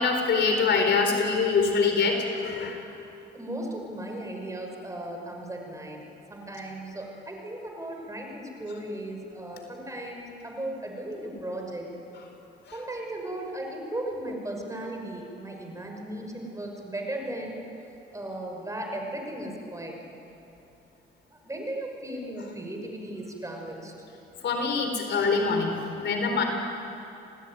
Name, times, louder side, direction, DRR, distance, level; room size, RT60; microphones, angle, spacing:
voice 1, 0.0-2.8 24.4-26.4, left 4 dB, 65° left, 4 dB, 4.3 m, -24 dB
voice 2, 3.3-6.0 6.3-11.9 12.7-17.6 18.1-20.0 21.3-23.9, right 1 dB, 15° right, 1 dB, 5.7 m, -36 dB
27.0 x 18.0 x 9.5 m, 2.8 s
cardioid pair, 90°, 20 cm